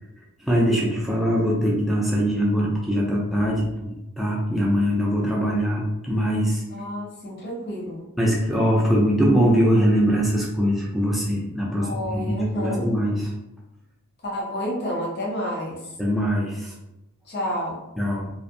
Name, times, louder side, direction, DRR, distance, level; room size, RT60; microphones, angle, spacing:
voice 1, 0.4-6.6 8.2-13.3 16.0-16.7 18.0-18.3, equal, ahead, -4 dB, 0.3 m, -22 dB
voice 2, 6.7-8.1 11.8-12.9 14.2-15.9 17.3-17.8, equal, 50° left, -3 dB, 0.7 m, -30 dB
2.5 x 2.1 x 2.5 m, 0.91 s
head